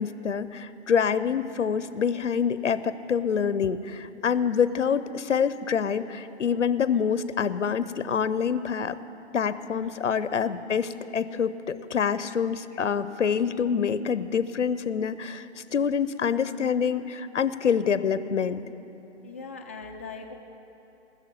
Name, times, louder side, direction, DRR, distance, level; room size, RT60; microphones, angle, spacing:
voice 1, 0.0-9.0 9.3-18.6, left 7 dB, 85° left, 14 dB, 0.6 m, -26 dB
voice 2, 9.7-10.0 19.2-20.3, left 4 dB, 15° left, 1 dB, 0.3 m, -40 dB
19.5 x 6.8 x 8.4 m, 2.9 s
figure-of-eight pair, 130°, 36 cm